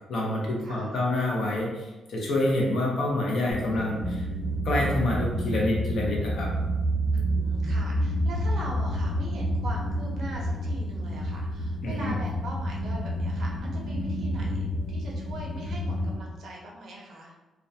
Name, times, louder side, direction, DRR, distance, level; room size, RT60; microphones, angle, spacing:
voice 1, 0.1-4.2 4.6-6.5 11.8-12.1, left 1 dB, 55° left, -3 dB, 0.6 m, -27 dB
voice 2, 0.6-1.0 3.6-4.1 7.1-17.3, right 1 dB, 55° right, -2 dB, 0.5 m, -41 dB
sound 1, 3.5-16.2, equal, 5° left, 0.4 m, -29 dB
2.2 x 2.1 x 2.6 m, 1.1 s
cardioid pair, 165°, 0 cm